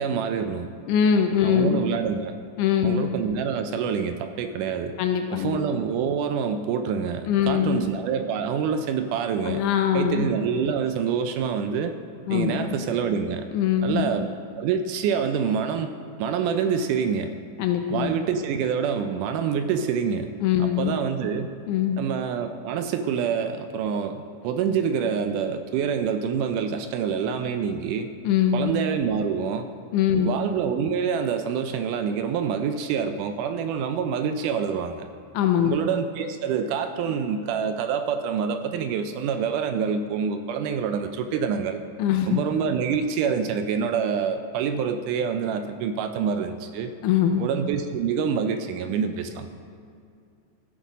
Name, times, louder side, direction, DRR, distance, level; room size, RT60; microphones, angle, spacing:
voice 1, 0.0-0.7 1.4-2.3 2.8-5.0 5.3-9.6 9.9-12.0 12.3-13.5 13.8-14.3 14.6-15.9 16.2-17.4 17.9-20.3 20.6-21.5 22.0-28.1 28.5-29.7 30.2-35.1 35.6-41.8 42.3-46.9 47.4-49.5, right 7 dB, 80° right, 8 dB, 1.9 m, -26 dB
voice 2, 0.9-1.9 2.6-3.1 5.0-5.6 7.3-7.9 9.5-10.3 12.3-12.7 13.5-14.1 17.6-18.1 20.4-20.9 21.7-22.0 28.2-28.7 29.9-30.4 35.3-35.8 42.0-42.4 47.0-47.4, left 9 dB, 80° left, 6 dB, 1.9 m, -22 dB
15.0 x 7.8 x 4.1 m, 2.4 s
omnidirectional pair, 3.9 m